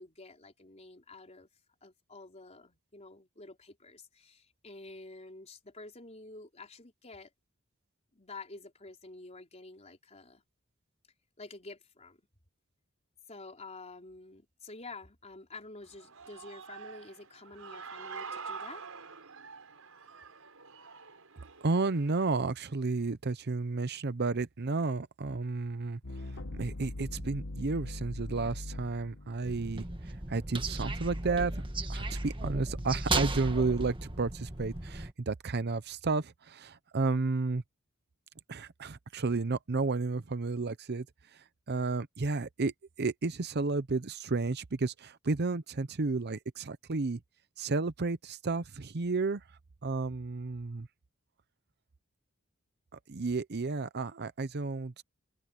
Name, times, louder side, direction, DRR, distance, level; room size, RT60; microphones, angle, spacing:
voice 1, 0.0-1.5 1.8-7.3 8.1-10.4 11.4-12.2 13.3-18.8, left 3 dB, 30° left, 4.0 m, -49 dB
Human voice / Cheering, 15.8-22.4, right 5 dB, 80° right, 5.7 m, -46 dB
voice 2, 21.6-31.5 31.9-37.6 38.5-41.1 41.3-42.7 43.0-47.2 47.6-49.4 49.8-50.9 53.1-55.0, right 3 dB, 50° right, 0.7 m, -32 dB
sound 1, 26.0-30.1, left 1 dB, 65° left, 1.3 m, -41 dB
sound 2, 29.4-35.1, right 2 dB, 25° right, 1.7 m, -35 dB
head